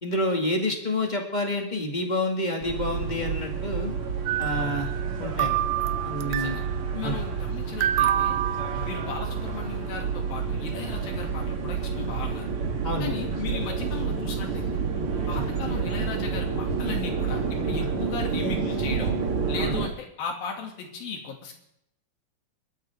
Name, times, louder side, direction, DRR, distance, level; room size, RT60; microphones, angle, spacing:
voice 1, 0.0-3.9 4.4-4.9 5.2-5.5 6.0-6.6 7.0-7.2 8.7-8.9 12.8-13.1 15.3-15.4 17.8-17.9 19.6-19.7, left 1 dB, 20° left, 2 dB, 1.4 m, -28 dB
sound 1, 2.6-19.9, right 5 dB, 45° right, 2.1 m, -29 dB
sound 2, 4.3-5.1 5.4-6.8 7.8-9.4, right 12 dB, 75° right, 2.1 m, -27 dB
voice 2, 4.6-4.9 6.2-6.6 6.9-8.4 8.8-12.5 13.0-14.7 15.3-19.1 19.5-21.5, left 5 dB, 75° left, 2 dB, 4.4 m, -36 dB
23.5 x 12.5 x 3.7 m, 0.78 s
omnidirectional pair, 4.2 m